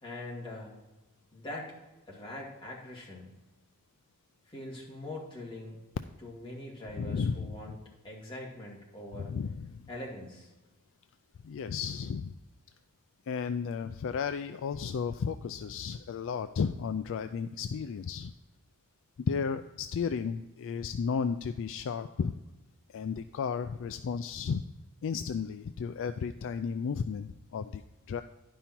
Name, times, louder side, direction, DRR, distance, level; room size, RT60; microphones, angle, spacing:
voice 1, 0.0-0.8 1.3-1.7 2.1-3.3 4.5-5.8 6.2-9.3 9.9-10.5, left 1 dB, 25° left, -4 dB, 2.4 m, -43 dB
voice 2, 6.9-7.5 9.1-9.8 11.4-12.3 13.3-18.3 19.3-22.4 22.9-24.6 25.0-27.8 28.1-28.2, left 6 dB, 60° left, 10 dB, 0.3 m, -33 dB
11.0 x 5.5 x 4.4 m, 1.1 s
head